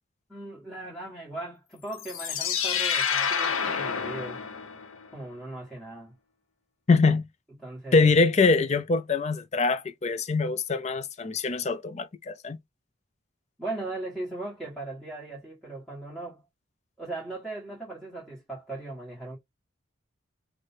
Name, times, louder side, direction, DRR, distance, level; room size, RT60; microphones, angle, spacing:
voice 1, 0.3-4.4 5.1-6.1 7.6-8.1 13.6-16.4 17.0-19.4, right 2 dB, ahead, 1.4 m, -38 dB
sound 1, 1.9-5.1, left 7 dB, 85° left, 0.8 m, -28 dB
voice 2, 6.9-7.2 7.9-12.6, left 4 dB, 35° left, 0.4 m, -23 dB
4.7 x 2.2 x 4.3 m
head